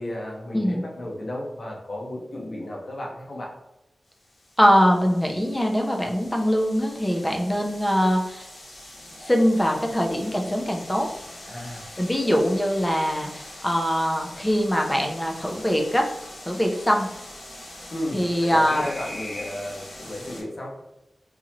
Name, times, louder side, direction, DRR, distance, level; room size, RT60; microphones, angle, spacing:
voice 1, 0.0-3.6 11.5-11.9 17.9-20.8, left 1 dB, 50° left, -1 dB, 1.0 m, -34 dB
voice 2, 0.5-0.9 4.6-8.5 9.2-11.1 12.0-16.0 16.5-17.1 18.1-18.8, equal, 10° left, 1 dB, 0.6 m, -22 dB
sound 1, 4.1-20.4, left 1 dB, 90° left, 1.2 m, -42 dB
3.9 x 2.8 x 2.9 m, 0.89 s
wide cardioid pair, 100°, 0 cm